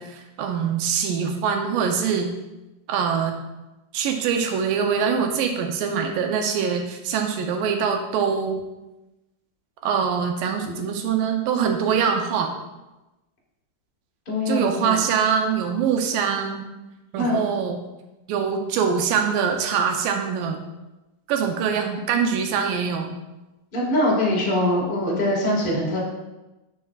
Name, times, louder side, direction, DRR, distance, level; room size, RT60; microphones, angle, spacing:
voice 1, 0.0-2.3 2.9-3.4 3.9-8.6 9.8-12.5 14.5-16.7 17.1-17.8 18.3-20.6 21.3-23.1, right 6 dB, 80° right, 4 dB, 2.2 m, -23 dB
voice 2, 14.2-15.0 17.2-17.4 23.7-26.0, left 1 dB, 50° left, -4 dB, 0.6 m, -23 dB
10.5 x 5.8 x 2.4 m, 1.0 s
omnidirectional pair, 4.2 m